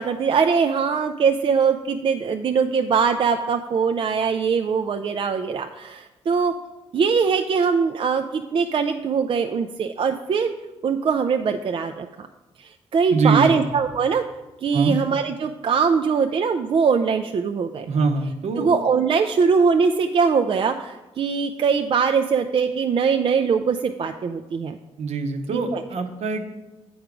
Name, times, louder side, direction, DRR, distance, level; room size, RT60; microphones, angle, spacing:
voice 1, 0.0-6.5 6.9-10.5 10.8-12.3 12.6-14.2 14.6-17.9 18.6-24.8 25.5-25.8, right 6 dB, 50° right, 6 dB, 0.4 m, -22 dB
voice 2, 13.1-13.6 14.7-14.9 17.9-18.7 25.0-26.5, right 4 dB, 70° right, 6 dB, 0.8 m, -23 dB
7.9 x 4.7 x 5.0 m, 1.1 s
cardioid pair, 70°, 12 cm